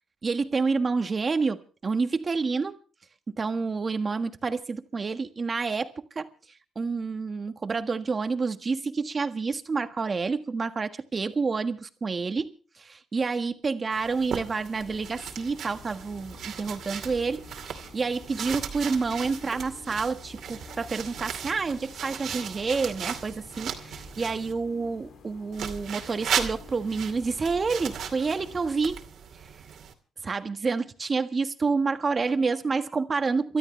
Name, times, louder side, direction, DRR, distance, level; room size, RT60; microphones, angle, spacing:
voice 1, 0.2-2.8 3.3-6.3 6.7-29.0 29.4-29.5 30.2-33.6, right 4 dB, 35° right, 1.5 m, -29 dB
sound 1, 13.9-24.5 25.5-29.9, right 8 dB, 70° right, 2.5 m, -37 dB
sound 2, 14.8-28.7, left 5 dB, 70° left, 2.9 m, -50 dB
28.5 x 13.0 x 3.3 m
cardioid pair, 90°, 0 cm